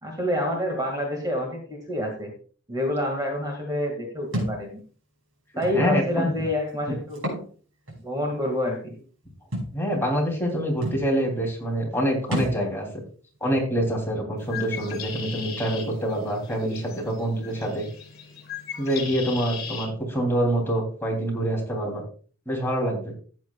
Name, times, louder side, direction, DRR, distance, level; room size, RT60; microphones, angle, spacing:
voice 1, 0.0-2.3 2.7-4.8 5.6-7.3 8.0-9.0, left 1 dB, 20° right, 1 dB, 2.2 m, -27 dB
Thump thud, 4.3-4.6 5.6-5.8 7.1-7.5 7.9-8.0 9.5-9.7 10.5-10.6 10.8-11.0 12.3-12.6, equal, 70° right, 5.9 m, -28 dB
voice 2, 5.7-6.3 6.9-7.0 9.7-13.0 13.4-17.9 18.8-22.0 22.4-23.1, right 1 dB, 10° left, -1 dB, 3.2 m, -26 dB
Bird, 14.4-19.9, left 7 dB, 50° left, 3.3 m, -38 dB
14.5 x 9.4 x 2.4 m, 0.41 s
head